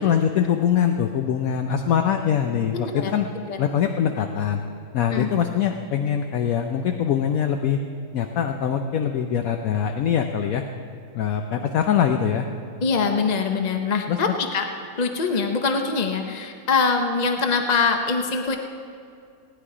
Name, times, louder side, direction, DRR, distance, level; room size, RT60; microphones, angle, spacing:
voice 1, 0.0-3.3 3.6-4.6 4.9-7.8 8.1-10.6 11.2-12.5 14.1-14.2, left 8 dB, 70° left, 5 dB, 1.0 m, -23 dB
voice 2, 2.7-3.1 3.5-3.6 5.1-5.3 12.8-14.7 15.0-18.6, left 4 dB, 40° left, 4 dB, 0.6 m, -23 dB
18.0 x 9.8 x 4.9 m, 2.4 s
omnidirectional pair, 1.6 m